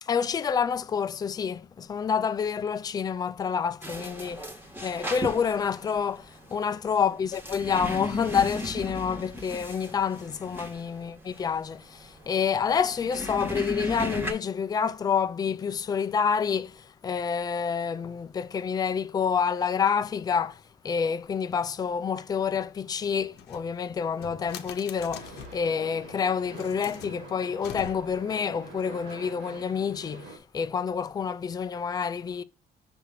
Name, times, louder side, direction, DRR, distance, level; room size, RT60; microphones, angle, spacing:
voice 1, 0.0-4.4 4.8-32.4, left 6 dB, 25° left, 0.4 m, -28 dB
sound 1, 3.8-14.3, equal, 10° right, 1.3 m, -36 dB
sound 2, 23.3-25.7 26.4-28.3, left 8 dB, 75° left, 0.8 m, -44 dB
sound 3, 25.1-30.4, right 2 dB, 90° right, 2.9 m, -45 dB
6.1 x 2.9 x 5.6 m
cardioid pair, 110°, 17 cm